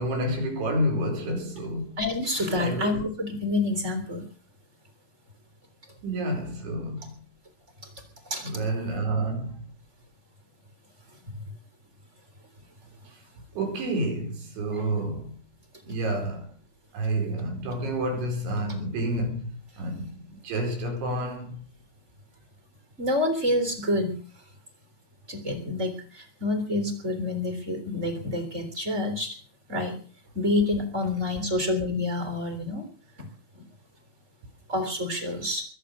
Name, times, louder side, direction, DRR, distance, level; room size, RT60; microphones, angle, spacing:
voice 1, 0.0-2.0 2.5-3.0 6.0-7.2 8.4-9.6 13.6-15.3 15.9-16.5 16.9-19.5 19.8-21.6, right 1 dB, 90° right, 6.9 m, -29 dB
voice 2, 2.0-4.3 8.3-8.5 11.3-11.4 14.7-14.9 23.0-24.2 25.3-29.3 29.7-30.0 30.3-32.9 33.2-33.3 33.5-33.7 34.7-35.6, left 2 dB, 15° right, 3.1 m, -28 dB
22.5 x 8.4 x 6.7 m
omnidirectional pair, 5.2 m